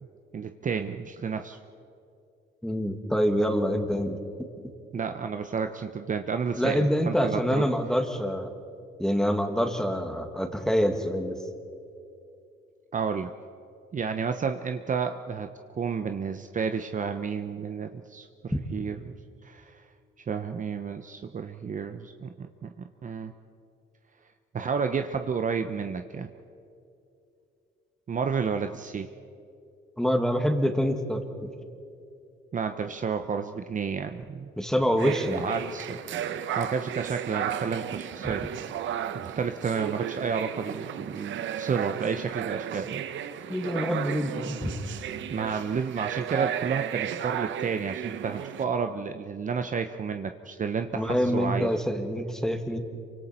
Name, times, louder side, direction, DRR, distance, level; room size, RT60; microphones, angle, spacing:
voice 1, 0.3-1.6 4.9-7.7 12.9-13.3 13.9-19.2 19.4-19.8 20.3-22.7 23.0-23.3 24.5-26.3 28.1-29.1 32.5-34.5 35.0-38.5 39.1-43.0 45.3-51.7, right 6 dB, 40° right, 7 dB, 0.9 m, -31 dB
voice 2, 2.6-4.2 6.6-8.5 9.0-11.4 18.5-18.6 30.0-31.5 34.6-35.4 43.5-44.7 50.9-52.8, equal, 5° left, 5 dB, 2.1 m, -26 dB
sound 1, 35.0-48.6, right 10 dB, 75° right, 0.9 m, -34 dB
27.0 x 24.5 x 4.5 m, 2.6 s
cardioid pair, 90°, 20 cm